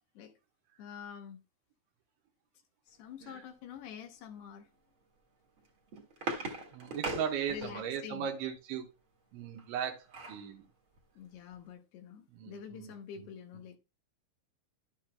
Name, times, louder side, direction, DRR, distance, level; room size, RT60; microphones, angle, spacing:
voice 1, 0.8-1.4 2.9-4.7 6.2-6.5 7.5-8.3 11.2-13.8, left 8 dB, 75° left, 2.7 m, -47 dB
sound 1, 5.6-8.0 9.6-10.5 11.0-11.1 11.3-11.6, right 2 dB, 55° right, 1.4 m, -40 dB
voice 2, 6.7-8.9 9.3-10.7 12.3-12.9, right 8 dB, 85° right, 3.4 m, -37 dB
12.0 x 8.4 x 2.2 m
omnidirectional pair, 5.2 m